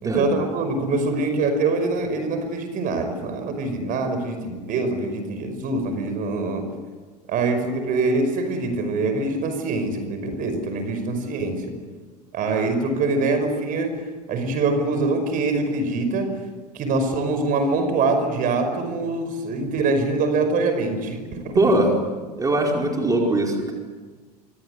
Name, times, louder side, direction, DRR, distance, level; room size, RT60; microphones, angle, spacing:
voice 1, 0.0-6.6 7.3-11.7 12.3-14.0 14.3-16.4 16.7-21.5, right 3 dB, 40° right, 8 dB, 5.4 m, -24 dB
voice 2, 21.6-21.9 22.4-23.7, right 2 dB, 15° right, 1 dB, 4.9 m, -20 dB
26.5 x 25.0 x 8.2 m, 1.4 s
figure-of-eight pair, 75°, 21 cm